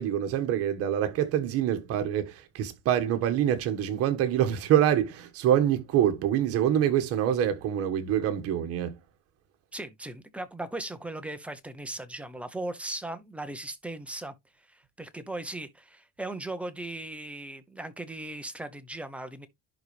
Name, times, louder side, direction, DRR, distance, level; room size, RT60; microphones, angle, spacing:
voice 1, 0.0-9.0, right 10 dB, 45° right, 1.6 m, -25 dB
voice 2, 9.7-19.5, right 2 dB, 5° right, 0.7 m, -38 dB
11.0 x 4.1 x 3.3 m
cardioid pair, 165°, 32 cm